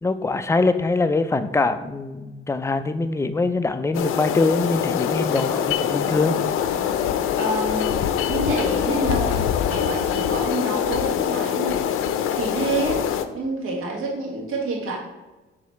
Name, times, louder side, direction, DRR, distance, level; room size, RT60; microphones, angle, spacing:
voice 1, 0.0-6.4, left 3 dB, 15° left, 9 dB, 0.4 m, -23 dB
sound 1, 3.9-13.2, left 9 dB, 80° left, 0.5 m, -24 dB
voice 2, 7.4-11.9 12.4-13.0 13.3-15.0, right 2 dB, 85° right, -2 dB, 1.7 m, -28 dB
4.8 x 4.0 x 5.7 m, 1.2 s
cardioid pair, 110°, 21 cm